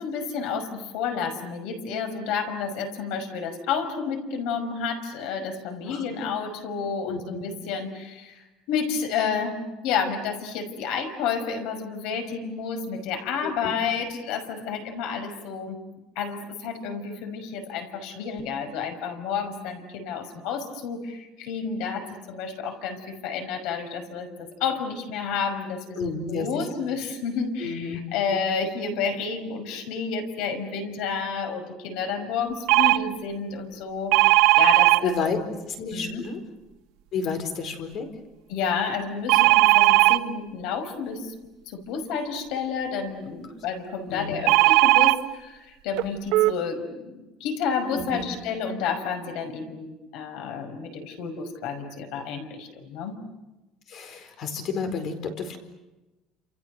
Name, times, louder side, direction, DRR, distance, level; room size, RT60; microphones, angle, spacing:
voice 1, 0.0-9.6 9.8-15.8 16.2-35.4 35.9-36.2 38.5-41.3 41.7-53.2, left 6 dB, 70° left, 7 dB, 5.7 m, -30 dB
voice 2, 7.0-7.4 13.4-13.7 26.0-26.7 27.6-28.0 28.3-28.4 35.0-35.4 35.7-36.4 37.1-38.1 44.1-44.4 47.9-48.3 53.9-55.6, left 5 dB, 45° left, 8 dB, 4.5 m, -31 dB
sound 1, 32.7-33.0 34.1-35.0 39.3-40.2 44.5-45.2 46.0-46.1 46.3-46.5, right 20 dB, 75° right, 1.1 m, -17 dB
30.0 x 28.5 x 6.8 m, 1.0 s
cardioid pair, 160°, 0 cm